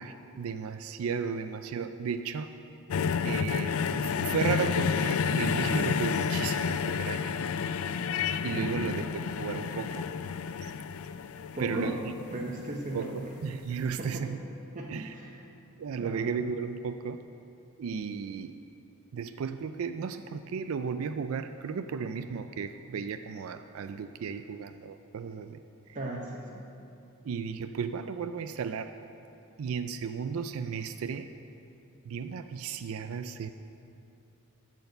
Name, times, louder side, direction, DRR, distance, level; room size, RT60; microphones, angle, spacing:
voice 1, 0.0-2.5 3.2-7.3 8.4-10.1 11.6-12.0 12.9-14.4 14.9-15.1 15.8-17.2 17.8-18.6 19.1-25.6 25.9-26.0 27.2-29.0 29.6-31.3 32.0-33.5, right 6 dB, 70° right, 9 dB, 0.4 m, -34 dB
sound 1, 2.9-13.1 14.0-14.1, left 6 dB, 75° left, 0.4 m, -30 dB
voice 2, 8.5-8.9 11.5-11.9 12.3-13.3 14.0-14.3 14.7-15.4 16.0-16.3 25.9-26.6, right 2 dB, 35° right, -2 dB, 0.8 m, -36 dB
13.5 x 4.6 x 7.8 m, 2.7 s
head